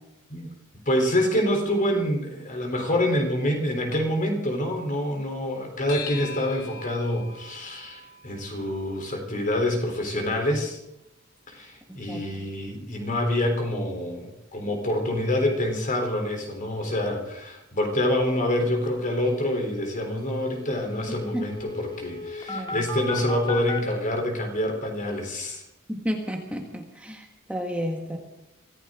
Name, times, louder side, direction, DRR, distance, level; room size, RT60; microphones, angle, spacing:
voice 1, 0.9-10.8 11.5-25.6, left 1 dB, 40° left, 3 dB, 3.9 m, -26 dB
sound 1, 5.9-10.6, left 5 dB, 80° left, 5.8 m, -42 dB
voice 2, 12.1-12.5 21.3-21.5 22.5-22.9 25.9-28.2, equal, 5° right, 2 dB, 1.6 m, -32 dB
sound 2, 18.9-19.0 19.2-23.8, left 3 dB, 25° left, 2.2 m, -36 dB
24.0 x 15.0 x 3.9 m, 0.86 s
head